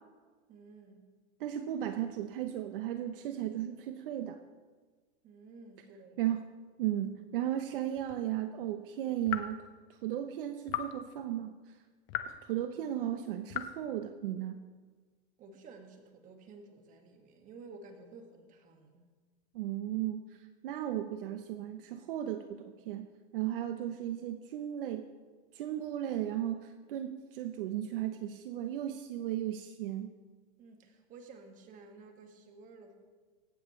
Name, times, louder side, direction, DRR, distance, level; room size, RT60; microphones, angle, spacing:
voice 1, 0.5-1.0 5.2-6.2 15.4-19.1 30.6-32.9, right 3 dB, 25° right, 4 dB, 1.9 m, -53 dB
voice 2, 1.4-4.4 6.2-6.4 6.8-11.7 12.2-14.6 19.5-23.1 23.3-25.1 25.5-30.1, right 11 dB, 55° right, 8 dB, 1.0 m, -35 dB
sound 1, 8.0-8.2 9.3-9.6 10.7-11.0 12.1-12.4 13.5-13.8, left 11 dB, 15° left, 0.3 m, -37 dB
25.0 x 12.5 x 3.3 m, 1.4 s
supercardioid pair, 155°, 33 cm